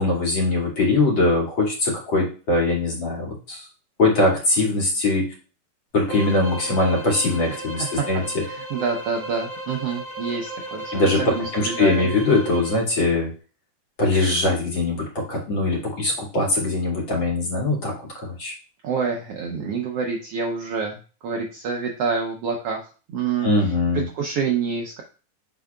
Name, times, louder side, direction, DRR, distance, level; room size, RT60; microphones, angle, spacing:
voice 1, 0.0-3.6 4.0-5.2 5.9-8.2 10.9-13.3 14.0-18.5 23.4-24.1, left 2 dB, 40° left, -2 dB, 2.5 m, -21 dB
sound 1, 6.0-12.9, right 1 dB, 15° right, 2.1 m, -35 dB
voice 2, 7.5-8.0 8.4-12.1 18.8-25.0, right 5 dB, 90° right, 1 dB, 1.3 m, -28 dB
7.4 x 6.2 x 2.3 m, 0.35 s
omnidirectional pair, 3.8 m